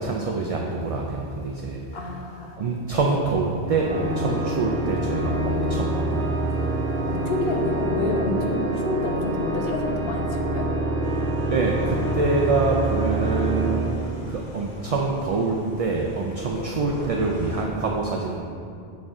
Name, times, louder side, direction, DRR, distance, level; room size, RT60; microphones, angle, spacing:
voice 1, 0.0-2.1 2.6-6.9 11.5-14.0 14.3-18.4, right 3 dB, 45° right, 0 dB, 0.5 m, -26 dB
voice 2, 1.9-2.6 3.0-3.2 7.1-10.7 16.5-16.7, left 2 dB, 70° left, 1 dB, 1.0 m, -29 dB
Organ, 3.7-14.6, right 2 dB, 75° right, 1.2 m, -26 dB
sound 1, 11.0-17.6, left 1 dB, 45° left, 0.8 m, -39 dB
6.9 x 6.4 x 3.7 m, 2.5 s
omnidirectional pair, 1.0 m